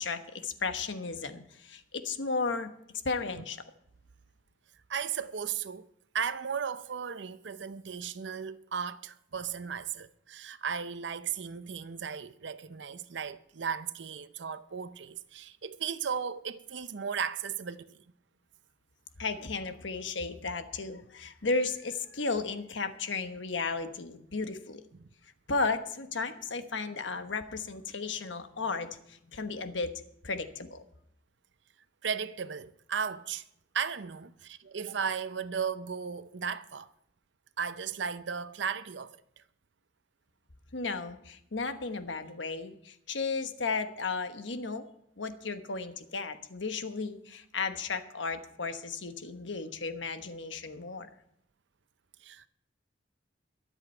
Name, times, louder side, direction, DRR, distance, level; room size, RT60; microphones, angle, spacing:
voice 1, 0.0-2.7 3.0-3.6 19.2-24.8 25.5-30.8 40.7-44.9 45.2-51.1, left 4 dB, 80° left, 1.2 m, -34 dB
voice 2, 4.9-5.9 6.1-18.0 32.0-33.4 33.7-36.9 37.6-39.2 52.2-52.5, right 7 dB, 70° right, 0.6 m, -35 dB
22.5 x 8.2 x 4.4 m
head